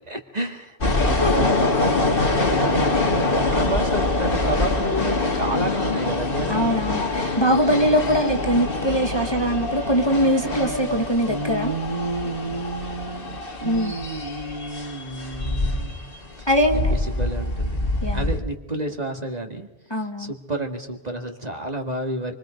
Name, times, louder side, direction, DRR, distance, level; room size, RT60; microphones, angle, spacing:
voice 1, 0.1-6.8 7.8-7.9 10.4-11.0 11.2-16.0 16.4-17.8 18.1-22.3, right 2 dB, 35° right, 3 dB, 2.2 m, -31 dB
sound 1, 0.8-18.4, left 2 dB, 45° left, 2.2 m, -25 dB
voice 2, 6.5-11.7 13.6-13.9 16.5-16.9 18.0-18.2 19.9-20.3, equal, 20° left, 4 dB, 1.6 m, -22 dB
27.0 x 24.5 x 5.2 m, 0.96 s
omnidirectional pair, 1.3 m